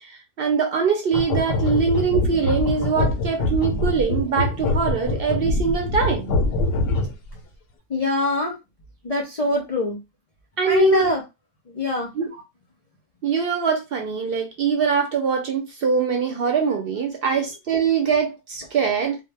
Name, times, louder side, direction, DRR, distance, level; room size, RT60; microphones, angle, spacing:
voice 1, 0.0-6.3 10.6-11.1 12.2-12.3 13.2-19.2, right 6 dB, 60° right, 0.6 m, -23 dB
sound 1, 1.1-7.3, left 2 dB, 90° left, 1.0 m, -24 dB
voice 2, 7.9-8.6 9.0-10.0 10.7-11.2 11.7-12.1 17.2-17.4, left 3 dB, 50° left, 0.4 m, -23 dB
2.1 x 2.1 x 3.2 m
omnidirectional pair, 1.3 m